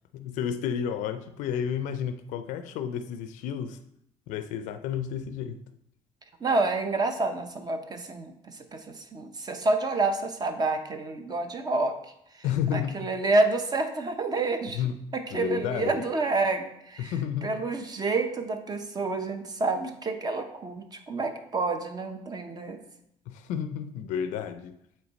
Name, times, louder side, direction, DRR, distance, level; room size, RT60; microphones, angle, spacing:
voice 1, 0.1-3.8 4.3-5.6 12.4-13.0 14.7-15.0 15.3-16.0 17.0-17.6 23.3-24.8, left 8 dB, 85° left, 0.4 m, -31 dB
voice 2, 6.4-12.0 12.7-14.8 15.1-17.1 17.4-22.8, right 3 dB, 30° right, 0.7 m, -28 dB
8.1 x 3.2 x 4.0 m
cardioid pair, 115°, 13 cm